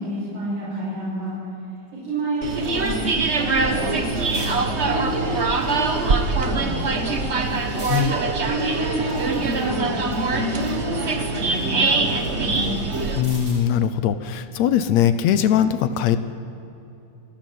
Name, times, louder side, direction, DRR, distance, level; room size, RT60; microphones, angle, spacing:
voice 1, 0.0-1.4 2.0-4.5 4.8-7.5 8.4-12.8, right 1 dB, 85° right, -8 dB, 6.8 m, -29 dB
sound 1, 1.3-1.4 1.8-3.3 3.6-4.6 5.5-6.4 7.0-8.1 8.6-10.8 11.2-13.7 15.1-15.3, right 1 dB, 20° right, 5.6 m, -46 dB
sound 2, 2.4-13.2, right 3 dB, 55° right, 0.7 m, -23 dB
voice 2, 13.2-16.2, left 9 dB, 75° left, 12 dB, 1.9 m, -20 dB
27.5 x 12.0 x 9.4 m, 2.8 s
omnidirectional pair, 3.4 m